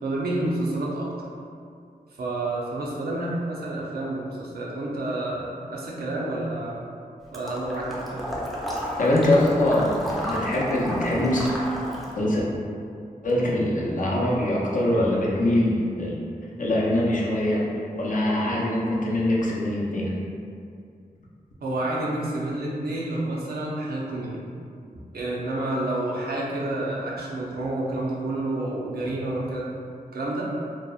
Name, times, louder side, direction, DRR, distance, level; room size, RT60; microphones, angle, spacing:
voice 1, 0.0-1.3 2.2-6.8 7.3-8.3 21.6-24.4 25.1-29.7 30.1-30.5, right 2 dB, 90° right, -4 dB, 0.5 m, -29 dB
Water / Liquid, 7.3-12.2, equal, ahead, 0.4 m, -32 dB
voice 2, 9.0-11.5 12.2-12.4 13.2-16.2 16.6-17.7 17.9-20.2, left 1 dB, 60° left, -5 dB, 0.5 m, -23 dB
2.7 x 2.0 x 2.3 m, 2.4 s
wide cardioid pair, 80°, 16 cm